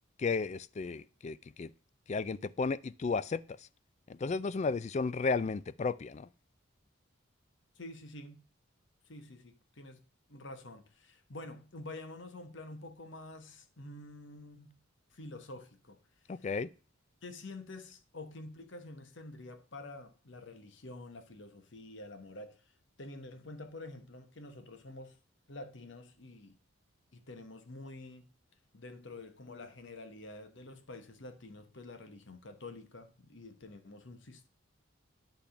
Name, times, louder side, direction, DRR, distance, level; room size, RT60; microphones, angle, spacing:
voice 1, 0.2-1.7 2.1-3.4 4.1-6.3 16.3-16.7, left 4 dB, 35° left, 0.3 m, -33 dB
voice 2, 7.8-8.4 9.1-10.0 10.3-14.7 15.1-16.0 16.4-16.5 17.2-22.6 23.0-25.2 25.5-26.6 27.1-28.3 28.7-34.5, left 2 dB, 60° left, 1.1 m, -48 dB
10.5 x 3.5 x 5.7 m
head